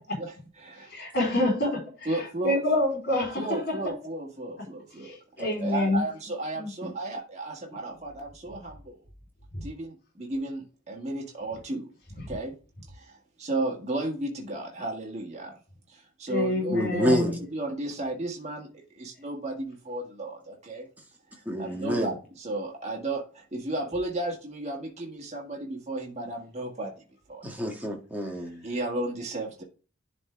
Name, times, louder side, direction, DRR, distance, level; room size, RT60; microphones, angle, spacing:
voice 1, 0.2-0.9 2.0-2.6 3.3-5.2 5.6-9.0 9.6-11.9 12.3-12.5 12.9-15.6 15.9-20.9 21.6-26.9 27.3-27.4 28.6-29.6, right 2 dB, 35° right, 1.8 m, -34 dB
voice 2, 0.9-3.9 5.0-6.0 6.6-6.7 9.5-9.6 16.3-17.4, left 1 dB, 50° left, 4.1 m, -27 dB
voice 3, 16.7-17.3 21.5-22.1 27.4-28.6, equal, 10° right, 1.8 m, -27 dB
11.0 x 4.1 x 3.4 m
head